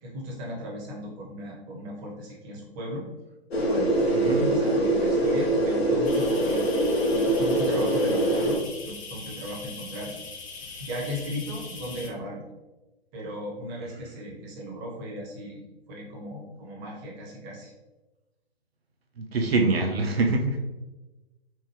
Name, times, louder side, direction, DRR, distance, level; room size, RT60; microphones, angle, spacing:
voice 1, 0.0-3.0 3.6-6.7 7.1-10.1 10.8-12.4 13.1-15.6 15.9-17.7, equal, 20° right, -3 dB, 0.9 m, -36 dB
sound 1, 3.5-8.6, right 1 dB, 75° left, 0.9 m, -23 dB
sound 2, 6.1-12.1, left 4 dB, 35° left, 0.6 m, -41 dB
voice 2, 19.2-20.6, right 3 dB, 75° right, 3 dB, 0.6 m, -24 dB
4.4 x 2.1 x 3.1 m, 1.1 s
figure-of-eight pair, 130°, 31 cm